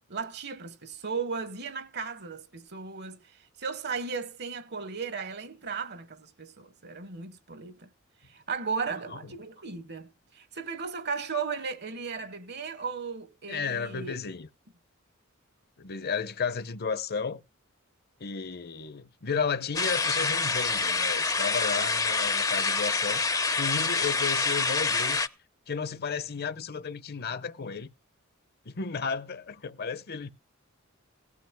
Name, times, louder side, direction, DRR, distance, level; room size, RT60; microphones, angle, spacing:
voice 1, 0.1-7.9 8.2-14.1, right 5 dB, 55° right, 1.2 m, -36 dB
voice 2, 13.5-14.5 15.8-17.4 18.2-23.2 23.5-25.2 25.7-27.9 28.7-30.3, left 5 dB, 50° left, 0.9 m, -33 dB
sound 1, 19.7-25.3, left 4 dB, 15° left, 0.7 m, -27 dB
17.5 x 12.0 x 2.2 m
head